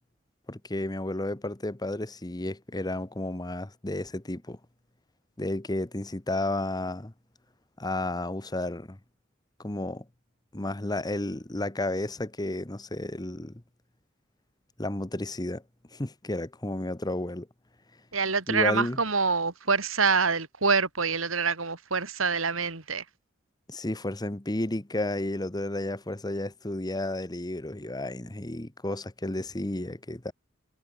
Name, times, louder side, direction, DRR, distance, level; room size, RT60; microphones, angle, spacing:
voice 1, 0.5-4.6 5.4-7.1 7.8-9.0 9.6-10.1 10.5-13.6 14.8-15.6 15.9-17.5 18.5-19.0 23.7-30.3, left 1 dB, 20° left, 1.2 m, -32 dB
voice 2, 18.1-23.0, right 5 dB, 80° right, 3.4 m, -26 dB
head